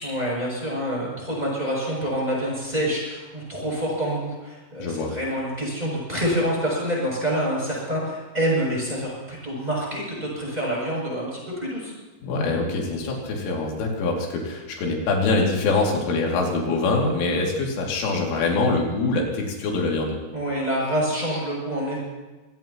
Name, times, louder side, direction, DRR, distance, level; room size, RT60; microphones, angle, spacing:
voice 1, 0.0-11.9 20.3-22.0, equal, 10° right, -4 dB, 7.1 m, -27 dB
voice 2, 4.8-5.2 12.2-20.2, left 3 dB, 85° left, -1 dB, 5.2 m, -24 dB
26.0 x 17.5 x 3.0 m, 1.2 s
omnidirectional pair, 5.5 m